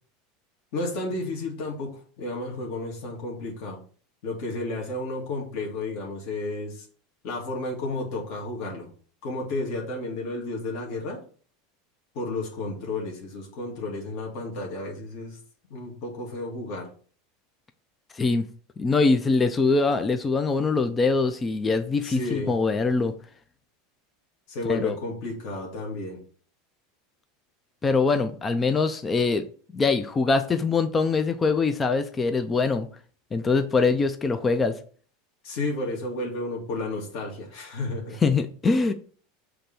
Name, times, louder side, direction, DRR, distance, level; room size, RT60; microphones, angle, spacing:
voice 1, 0.7-3.8 4.2-6.9 7.2-8.9 9.2-11.2 12.1-15.4 15.7-16.9 22.0-22.6 24.5-26.2 35.4-38.2, left 2 dB, 50° left, 2.4 m, -32 dB
voice 2, 18.1-18.5 18.8-23.1 24.7-25.0 27.8-29.4 29.7-32.9 33.3-34.8 38.2-38.9, left 4 dB, 15° left, 0.4 m, -23 dB
6.7 x 3.4 x 5.9 m
supercardioid pair, 165°, 0 cm